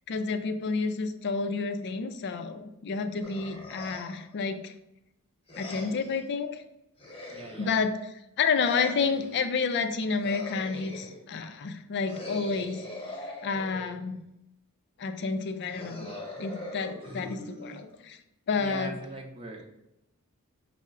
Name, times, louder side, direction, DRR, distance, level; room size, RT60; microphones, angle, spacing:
voice 1, 0.1-4.7 5.6-6.6 7.6-7.9 8.4-12.9 13.2-14.2 15.0-16.1 16.4-18.2 18.5-19.0, left 4 dB, 50° left, 9 dB, 0.4 m, -30 dB
sound 1, 3.2-4.3 5.5-6.2 7.0-7.9 8.6-9.5 10.2-11.3 12.1-14.1 15.7-18.1, left 2 dB, 25° left, 1.0 m, -42 dB
voice 2, 7.3-7.8 17.0-17.3 18.6-19.7, right 1 dB, 25° right, 2 dB, 0.6 m, -41 dB
5.4 x 2.0 x 3.6 m, 0.86 s
head